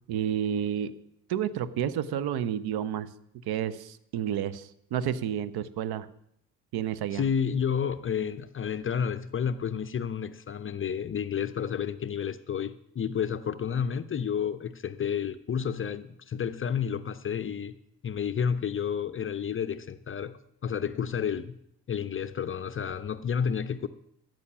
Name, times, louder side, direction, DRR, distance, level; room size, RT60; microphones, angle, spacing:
voice 1, 0.1-1.0 1.3-3.1 3.5-6.1 6.7-7.2, right 9 dB, 50° right, 0.9 m, -30 dB
voice 2, 7.1-17.8 18.0-21.6 21.9-23.9, left 7 dB, 25° left, 0.6 m, -30 dB
13.5 x 8.9 x 6.1 m
figure-of-eight pair, 50°, 49 cm